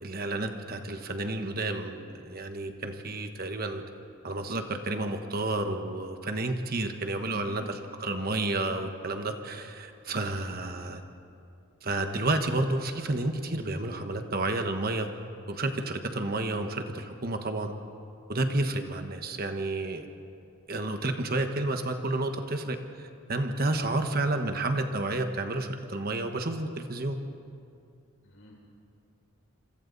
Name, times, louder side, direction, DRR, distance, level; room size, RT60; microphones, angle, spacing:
voice 1, 0.0-3.8 4.2-11.0 11.8-15.1 15.5-17.7 18.3-20.1 20.7-27.2, right 2 dB, 45° right, 6 dB, 1.3 m, -31 dB
voice 2, 7.2-7.7 10.1-10.3 23.6-24.0 28.2-28.6, left 1 dB, 65° left, -2 dB, 6.2 m, -49 dB
27.5 x 26.0 x 4.1 m, 2.5 s
head